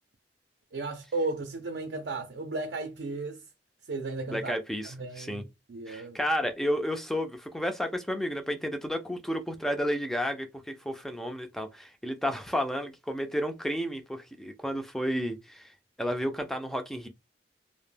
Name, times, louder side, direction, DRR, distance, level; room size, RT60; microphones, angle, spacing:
voice 1, 0.7-3.4 3.9-4.5 4.8-6.2, right 3 dB, 70° right, 0.5 m, -35 dB
voice 2, 4.3-5.4 5.9-15.7 16.0-17.1, equal, ahead, 0.4 m, -32 dB
2.1 x 2.1 x 3.2 m
head